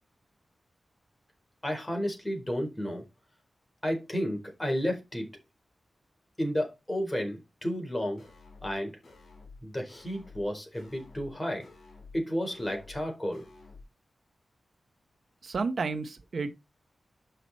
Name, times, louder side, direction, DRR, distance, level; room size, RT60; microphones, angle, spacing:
voice 1, 1.6-3.0 3.8-5.3 6.4-8.2 8.6-8.9 9.6-11.7 12.1-13.4, equal, 15° left, 4.2 m, -32 dB
sound 1, 8.2-8.7 9.0-9.6 9.9-10.5 10.7-11.3 11.6-12.2 12.5-13.0 13.3-13.8, left 3 dB, 65° left, 5.3 m, -51 dB
voice 2, 15.4-16.5, right 4 dB, 65° right, 1.0 m, -31 dB
7.8 x 6.0 x 4.1 m
wide cardioid pair, 85°, 0 cm